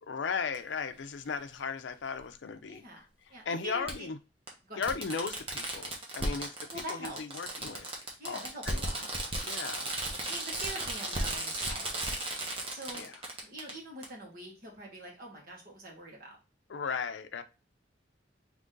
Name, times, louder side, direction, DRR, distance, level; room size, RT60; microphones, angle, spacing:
voice 1, 0.0-2.8 3.5-4.2 4.8-7.9 8.2-8.8 9.4-10.3 12.9-13.2 16.7-17.4, left 5 dB, 75° left, 0.5 m, -36 dB
Fireworks, 0.5-0.6 2.2-2.3 3.9-4.0 4.5-4.6 4.8-13.7 14.0-14.1, right 1 dB, 30° right, 1.0 m, -35 dB
voice 2, 2.6-4.1 4.6-4.9 6.4-7.2 8.2-9.1 10.3-12.2 12.7-13.1 13.4-16.4, right 1 dB, 50° right, 1.7 m, -45 dB
3.8 x 3.0 x 3.7 m
head